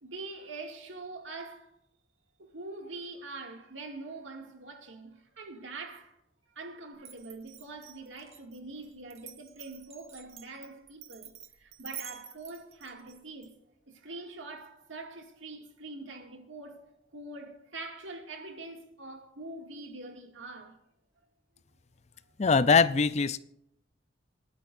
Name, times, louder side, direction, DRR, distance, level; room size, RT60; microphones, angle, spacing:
voice 1, 0.0-1.7 2.4-6.2 6.6-11.3 11.6-13.5 13.9-16.9 17.1-20.8, right 3 dB, 80° right, 2.3 m, -44 dB
Glass, 7.0-13.5, right 9 dB, 35° right, 1.2 m, -48 dB
voice 2, 22.4-23.4, left 5 dB, 35° left, 0.4 m, -22 dB
27.5 x 9.6 x 2.6 m
head